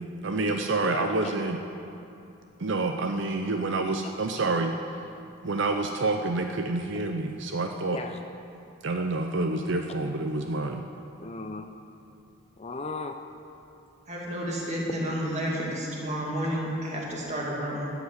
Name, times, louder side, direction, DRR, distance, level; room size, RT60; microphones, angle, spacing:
voice 1, 0.0-1.6 2.6-5.0 5.4-8.0 8.8-10.9, right 2 dB, 60° right, 4 dB, 0.6 m, -28 dB
voice 2, 0.8-1.3 7.9-8.2 11.2-11.7 12.6-13.2 14.9-15.0, left 3 dB, 30° left, 6 dB, 0.6 m, -36 dB
voice 3, 14.1-17.9, equal, 35° right, -3 dB, 2.5 m, -31 dB
13.0 x 8.1 x 8.1 m, 2.7 s
head